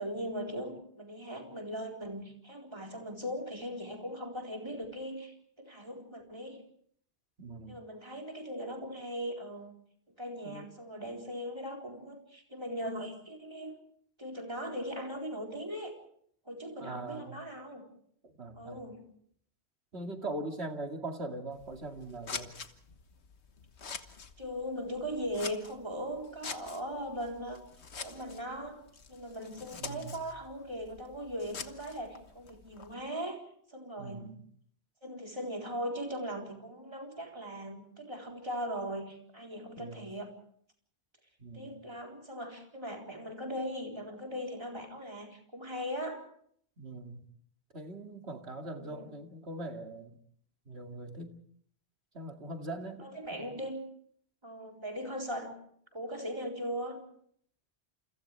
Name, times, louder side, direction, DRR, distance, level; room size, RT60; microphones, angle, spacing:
voice 1, 0.0-6.6 7.7-9.7 10.2-13.8 14.2-15.9 16.5-17.9 18.5-19.0 24.4-27.6 28.0-28.8 29.1-33.4 33.7-34.3 35.0-40.3 41.5-46.2 48.7-49.1 53.0-53.8 54.4-55.6 55.9-57.0, equal, 25° right, 0 dB, 4.1 m, -39 dB
voice 2, 7.4-7.8 10.4-10.7 16.8-17.3 18.4-18.8 19.9-22.5 29.7-30.2 34.0-34.4 39.8-40.1 41.4-41.8 46.8-47.2 47.7-50.2 50.7-51.4 52.1-53.4, right 2 dB, 75° right, 4 dB, 2.6 m, -41 dB
Scissors, 21.5-32.9, left 5 dB, 80° left, 1.6 m, -46 dB
29.0 x 28.5 x 3.4 m, 0.62 s
omnidirectional pair, 1.1 m